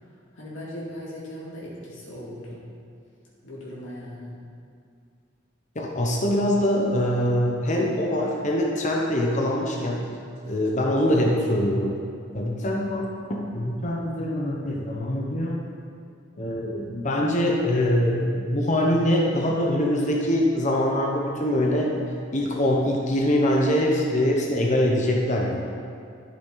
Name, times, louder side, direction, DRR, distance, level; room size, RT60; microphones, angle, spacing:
voice 1, 0.0-2.6 3.4-4.3, equal, 85° left, -6 dB, 2.4 m, -38 dB
voice 2, 5.7-10.1 10.5-11.9 12.3-15.6 16.4-21.9 22.3-25.7, left 1 dB, 40° left, -1 dB, 1.0 m, -23 dB
12.0 x 6.9 x 4.0 m, 2.4 s
head